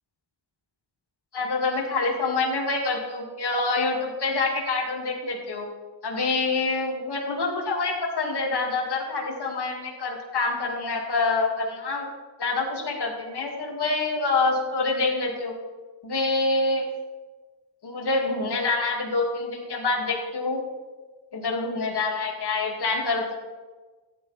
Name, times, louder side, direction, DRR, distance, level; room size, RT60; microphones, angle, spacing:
voice 1, 1.3-5.7 6.0-12.1 12.4-15.5 16.0-16.8 17.8-20.6 21.3-23.3, left 3 dB, 55° left, -1 dB, 2.3 m, -26 dB
14.5 x 9.4 x 3.4 m, 1.3 s
wide cardioid pair, 100°, 48 cm